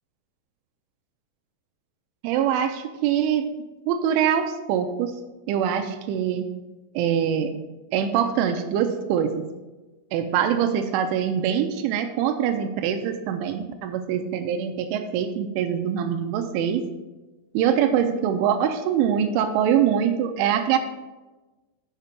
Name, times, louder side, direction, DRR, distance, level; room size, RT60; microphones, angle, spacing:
voice 1, 2.2-3.5 3.9-5.1 5.5-6.5 7.0-7.5 7.9-9.4 10.1-16.8 17.5-20.8, right 9 dB, 90° right, 6 dB, 3.2 m, -23 dB
8.3 x 6.6 x 5.9 m, 1.1 s
omnidirectional pair, 5.5 m